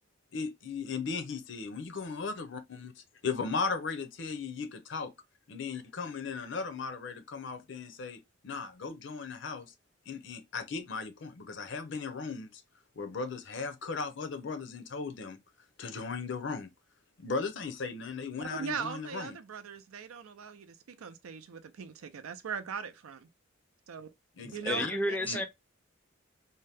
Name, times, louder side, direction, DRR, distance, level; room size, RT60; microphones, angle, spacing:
voice 1, 0.3-5.1 5.5-9.7 10.1-12.6 13.0-15.4 15.8-16.7 17.2-19.4 24.4-24.9 25.2-25.4, left 4 dB, 60° left, 0.5 m, -37 dB
voice 2, 18.4-23.3 23.9-24.1 24.5-25.5, right 6 dB, 85° right, 0.5 m, -40 dB
voice 3, 24.4-25.5, left 1 dB, 5° left, 0.4 m, -31 dB
2.8 x 2.1 x 3.3 m
head